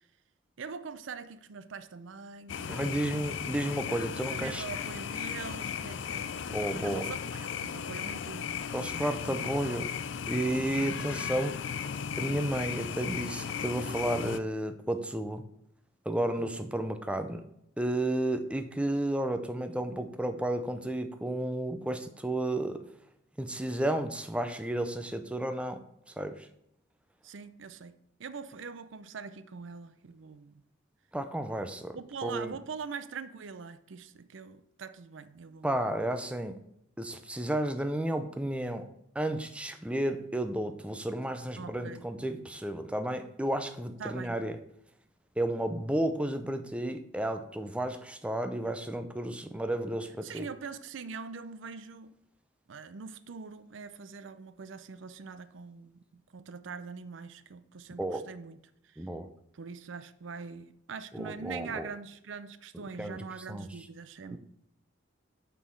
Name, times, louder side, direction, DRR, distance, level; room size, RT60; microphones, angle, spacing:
voice 1, 0.6-3.2 4.3-6.4 6.8-9.6 16.4-16.5 27.2-27.9 28.2-30.6 31.9-35.7 41.6-42.0 44.0-44.4 50.2-52.1 52.7-56.0 56.3-58.6 58.8-59.1 59.5-64.4, right 5 dB, 80° right, 13 dB, 0.5 m, -43 dB
sound 1, 2.5-14.4, left 7 dB, 65° left, 0.4 m, -36 dB
voice 2, 2.7-4.6 6.5-7.0 8.7-9.9 10.3-15.4 16.1-17.4 17.8-22.8 23.4-25.8 26.2-26.5 31.1-32.0 32.2-32.5 35.6-36.6 37.0-38.9 39.1-44.6 45.4-50.5 58.0-58.2 59.0-59.3 61.1-61.9 63.0-63.7 64.3-64.4, right 1 dB, 5° right, 8 dB, 0.5 m, -32 dB
6.4 x 5.6 x 4.5 m, 0.75 s
head